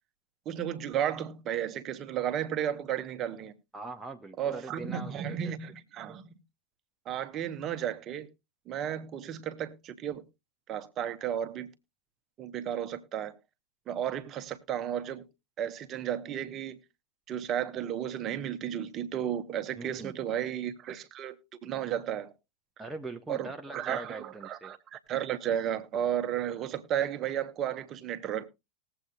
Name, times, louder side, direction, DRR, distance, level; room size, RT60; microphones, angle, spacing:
voice 1, 0.4-3.5 4.4-6.4 7.1-8.3 8.7-10.3 10.7-11.7 12.4-13.3 13.9-15.2 15.6-16.8 17.3-22.3 23.3-28.5, right 10 dB, 30° right, 1.0 m, -33 dB
voice 2, 3.7-5.5 19.8-20.2 22.8-24.7, right 2 dB, 10° right, 0.7 m, -42 dB
20.0 x 7.9 x 2.3 m
figure-of-eight pair, 90°, 0 cm